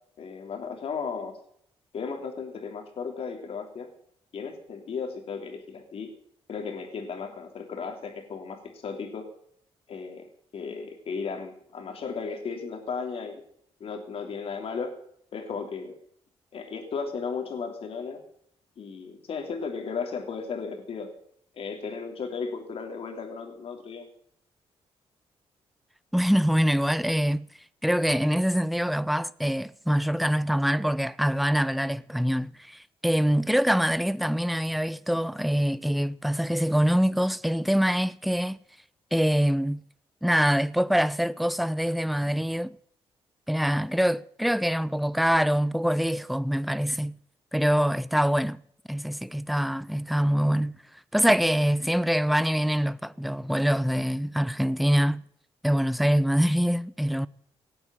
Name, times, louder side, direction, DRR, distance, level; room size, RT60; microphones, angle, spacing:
voice 1, 0.2-1.4 1.9-3.9 4.3-6.1 6.5-9.3 9.9-10.3 10.5-13.4 13.8-15.0 15.3-15.9 16.5-18.2 18.8-21.1 21.6-24.1, left 5 dB, 65° left, 3.3 m, -35 dB
voice 2, 26.1-27.5 27.8-38.6 39.1-39.8 40.2-42.8 43.5-47.1 47.5-48.6 48.9-50.8 51.1-55.2 55.6-57.3, equal, ahead, 0.6 m, -24 dB
18.5 x 8.0 x 9.1 m
cardioid pair, 80°, 11 cm